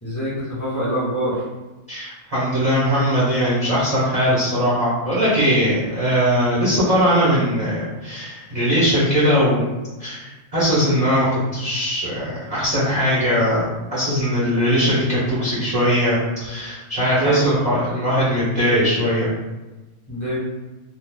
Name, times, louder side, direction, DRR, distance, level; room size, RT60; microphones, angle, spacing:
voice 1, 0.0-1.5 17.1-17.4 20.1-20.4, right 1 dB, 15° left, -10 dB, 1.1 m, -24 dB
voice 2, 1.9-9.7 10.0-19.3, equal, 30° right, -10 dB, 0.9 m, -20 dB
2.5 x 2.4 x 3.5 m, 1.1 s
omnidirectional pair, 1.5 m